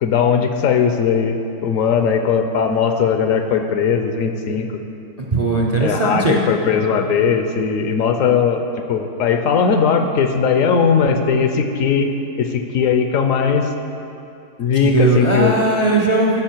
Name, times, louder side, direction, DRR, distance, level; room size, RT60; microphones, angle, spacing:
voice 1, 0.0-4.7 5.8-12.1 12.4-13.7 14.6-15.5, left 6 dB, 70° left, 6 dB, 0.9 m, -18 dB
voice 2, 5.3-6.4 14.7-16.4, right 2 dB, 45° right, -1 dB, 0.5 m, -18 dB
13.0 x 5.0 x 4.5 m, 2.7 s
omnidirectional pair, 1.6 m